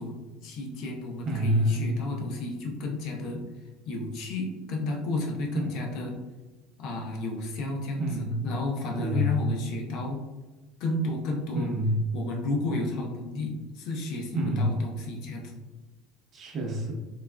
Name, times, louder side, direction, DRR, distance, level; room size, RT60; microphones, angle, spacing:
voice 1, 0.0-3.4 3.9-6.2 6.8-8.1 8.4-10.2 10.8-11.7 12.1-15.5, left 2 dB, 60° left, 1 dB, 0.6 m, -32 dB
voice 2, 1.2-1.8 5.5-5.8 8.0-8.3 9.0-9.4 11.5-12.0 14.3-14.7 16.3-17.0, equal, 40° right, -1 dB, 0.8 m, -27 dB
3.3 x 2.4 x 2.3 m, 1.2 s
supercardioid pair, 125°, 0 cm